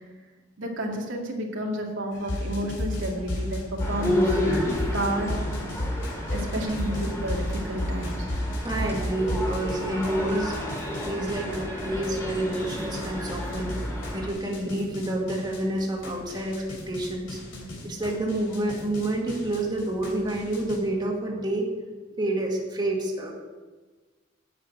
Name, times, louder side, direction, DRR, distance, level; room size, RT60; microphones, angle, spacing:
voice 1, 0.6-3.6 3.9-4.3 4.9-5.4 6.3-8.2, equal, 90° right, 0 dB, 2.2 m, -30 dB
sound 1, 2.1-20.8, left 1 dB, 75° left, 3.4 m, -34 dB
sound 2, 3.8-14.3, left 1 dB, 15° left, 2.6 m, -31 dB
voice 2, 8.6-10.5 11.1-13.7 14.1-16.6 16.9-17.4 17.8-21.7 22.2-23.3, right 1 dB, 20° right, -2 dB, 2.1 m, -28 dB
9.2 x 7.3 x 9.0 m, 1.3 s
head